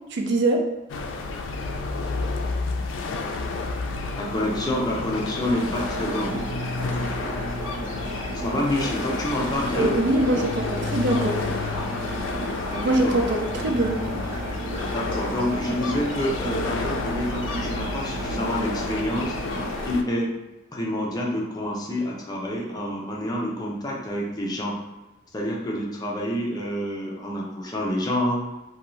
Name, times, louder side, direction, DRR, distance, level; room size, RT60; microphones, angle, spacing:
voice 1, 0.1-0.6 9.8-11.3 12.8-14.0, right 2 dB, 65° right, 3 dB, 0.4 m, -23 dB
sound 1, 0.9-20.0, left 3 dB, 85° left, 0.3 m, -30 dB
voice 2, 4.2-6.4 8.3-10.0 12.7-13.2 14.9-19.3 19.8-20.3 20.7-24.8 25.3-28.4, left 1 dB, 20° left, -3 dB, 0.5 m, -28 dB
sound 2, 5.5-19.9, right 1 dB, 45° right, 1.4 m, -34 dB
2.6 x 2.2 x 3.0 m, 1.0 s
head